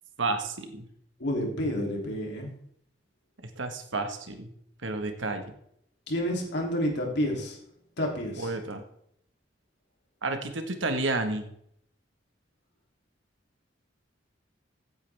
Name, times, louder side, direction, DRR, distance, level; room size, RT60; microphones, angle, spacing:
voice 1, 0.2-0.9 3.6-4.5 4.8-5.5 8.4-8.8 10.2-11.4, right 3 dB, 85° right, 6 dB, 1.6 m, -31 dB
voice 2, 1.2-2.5 6.1-7.6 8.0-8.6, equal, 65° left, 0 dB, 3.1 m, -29 dB
15.0 x 8.8 x 3.5 m, 0.70 s
head